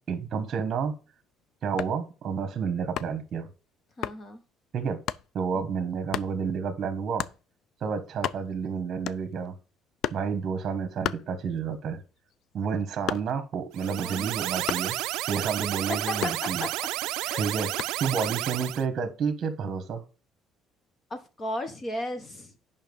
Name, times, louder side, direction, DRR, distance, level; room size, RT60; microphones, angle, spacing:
voice 1, 0.1-1.0 1.6-3.5 4.7-5.0 5.3-7.3 7.8-9.5 10.1-12.0 12.5-15.0 15.3-16.6 17.4-17.7 18.0-20.0, right 6 dB, 40° right, 9 dB, 1.3 m, -30 dB
sound 1, 1.8-2.1 3.0-3.3 4.0-4.2 5.1-5.3 6.1-6.4 7.2-7.4 7.9-8.7 9.1-9.5 10.0-10.3 11.0-11.8 12.2-13.5 14.7-15.0 16.2-16.9 17.8-18.1, left 11 dB, 60° left, 0.4 m, -33 dB
voice 2, 4.0-4.4 5.5-5.6 14.0-14.3 15.9-16.9 17.2-17.5 17.9-18.0 21.1-22.6, left 1 dB, 25° left, 9 dB, 1.3 m, -35 dB
sound 2, 13.7-18.8, right 17 dB, 85° right, 0.3 m, -31 dB
8.9 x 5.6 x 5.4 m, 0.33 s
cardioid pair, 150°, 0 cm